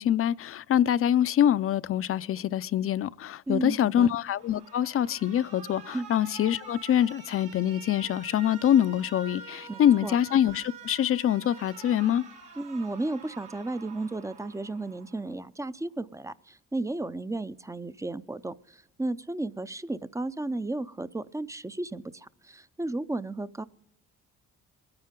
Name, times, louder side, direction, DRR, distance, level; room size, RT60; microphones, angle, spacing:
voice 1, 0.0-12.2, left 10 dB, 50° left, 0.5 m, -25 dB
voice 2, 3.5-4.1 5.9-6.1 9.7-10.2 12.6-23.6, right 2 dB, 10° right, 0.4 m, -34 dB
Alarm, 4.3-15.3, right 6 dB, 80° right, 2.5 m, -47 dB
22.0 x 9.7 x 3.7 m
cardioid pair, 90°, 30 cm